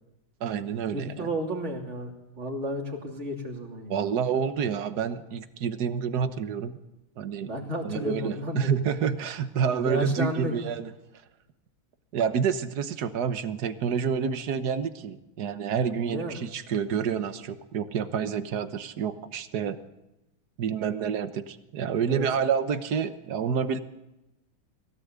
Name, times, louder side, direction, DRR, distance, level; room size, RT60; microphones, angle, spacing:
voice 1, 0.4-1.3 3.9-6.8 7.2-7.5 7.8-10.9 12.1-19.8 20.6-23.8, right 7 dB, 55° right, 10 dB, 1.5 m, -28 dB
voice 2, 0.9-4.0 7.4-8.7 9.8-10.5 16.0-16.4 22.1-22.3, equal, 35° right, 1 dB, 3.4 m, -32 dB
21.5 x 17.0 x 8.2 m, 0.98 s
omnidirectional pair, 2.2 m